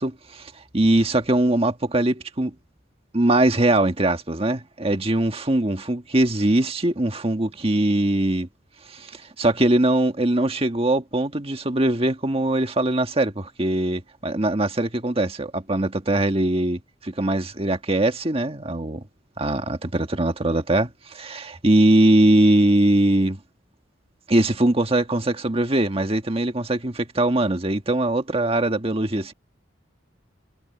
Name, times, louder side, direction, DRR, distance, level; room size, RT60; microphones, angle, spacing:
voice 1, 0.0-2.5 3.1-8.5 8.9-19.0 19.4-23.4 24.3-29.3, right 1 dB, 30° right, 1.6 m, -21 dB
head